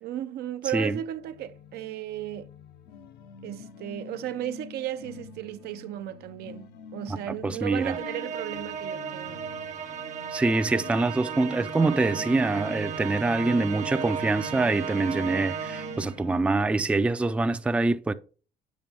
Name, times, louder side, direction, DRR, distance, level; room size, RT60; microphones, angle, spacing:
voice 1, 0.0-2.5 3.4-9.5, right 12 dB, 70° right, 0.5 m, -35 dB
sound 1, 1.0-16.4, left 6 dB, 70° left, 0.7 m, -45 dB
voice 2, 7.4-8.0 10.3-18.1, right 3 dB, 5° right, 0.4 m, -25 dB
Musical instrument, 7.8-16.3, right 7 dB, 45° right, 0.8 m, -35 dB
7.5 x 5.1 x 3.4 m
cardioid pair, 110°, 17 cm